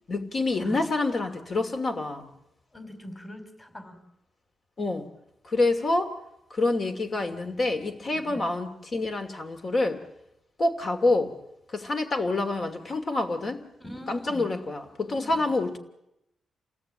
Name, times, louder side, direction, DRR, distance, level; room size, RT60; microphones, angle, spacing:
voice 1, 0.1-2.3 4.8-5.1 5.4-6.1 6.5-10.0 10.6-11.3 11.7-13.6 14.1-15.8, left 2 dB, 45° left, 6 dB, 2.6 m, -27 dB
voice 2, 2.7-4.0 8.1-8.4 13.8-14.5 15.1-15.5, equal, 20° left, 6 dB, 4.9 m, -43 dB
28.5 x 18.5 x 8.9 m, 0.86 s
cardioid pair, 125°, 0 cm